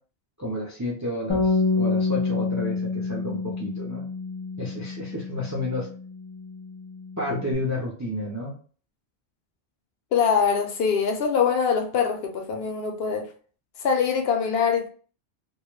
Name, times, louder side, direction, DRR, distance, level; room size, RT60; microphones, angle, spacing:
voice 1, 0.4-4.0 4.6-5.9 7.2-8.5, left 1 dB, 25° right, 0.3 m, -31 dB
Bass guitar, 1.3-7.5, left 3 dB, 50° left, 0.3 m, -28 dB
voice 2, 10.1-13.3 13.8-14.9, left 6 dB, 70° left, 0.8 m, -23 dB
2.3 x 2.1 x 3.0 m
omnidirectional pair, 1.1 m